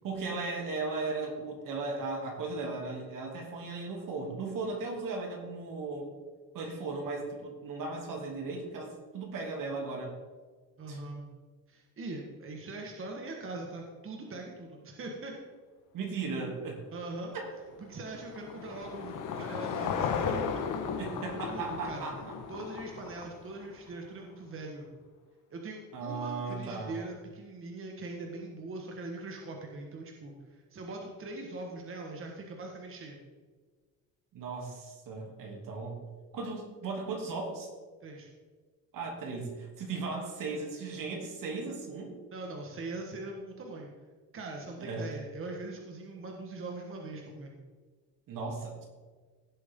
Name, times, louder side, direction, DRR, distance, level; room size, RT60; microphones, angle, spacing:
voice 1, 0.0-6.1 6.5-10.2 10.9-11.0 15.9-16.8 17.3-17.5 21.0-22.3 25.9-27.0 34.3-36.0 36.3-37.7 38.9-42.2 44.8-45.1 48.3-48.9, right 3 dB, 70° right, 1 dB, 2.9 m, -36 dB
voice 2, 10.8-11.2 11.7-15.4 16.9-17.3 17.8-20.6 21.4-22.1 22.5-24.9 25.5-33.2 38.0-38.3 42.3-43.9 44.3-47.5, right 2 dB, 40° right, 1 dB, 1.6 m, -41 dB
Car passing by / Engine, 17.4-23.9, left 6 dB, 65° left, 1.4 m, -35 dB
16.5 x 7.6 x 3.8 m, 1.5 s
cardioid pair, 125°, 34 cm